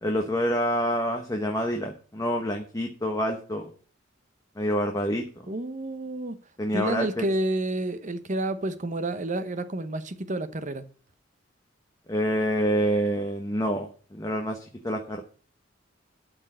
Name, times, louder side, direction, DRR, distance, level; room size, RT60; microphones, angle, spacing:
voice 1, 0.0-3.7 4.6-5.3 6.6-7.2 12.1-15.2, equal, 20° left, 1.1 m, -27 dB
voice 2, 5.5-6.4 6.7-10.9, right 1 dB, 40° right, 0.9 m, -30 dB
12.5 x 4.5 x 7.5 m
head